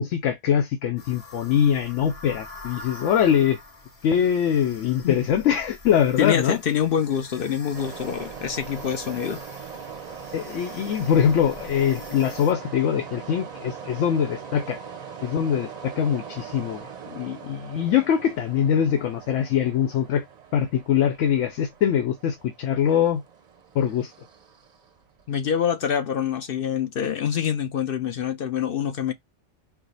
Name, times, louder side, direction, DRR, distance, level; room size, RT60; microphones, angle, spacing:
voice 1, 0.0-3.6 4.0-6.6 10.3-14.8 15.2-16.8 17.1-20.2 20.5-23.2 23.7-24.1, left 8 dB, 90° left, 0.9 m, -23 dB
sound 1, 1.0-12.5, left 2 dB, 35° left, 1.0 m, -45 dB
voice 2, 6.2-9.4 25.3-29.1, left 8 dB, 60° left, 0.7 m, -25 dB
sound 2, 7.7-25.4, right 6 dB, 45° right, 0.6 m, -41 dB
4.7 x 2.0 x 3.8 m
omnidirectional pair, 1.2 m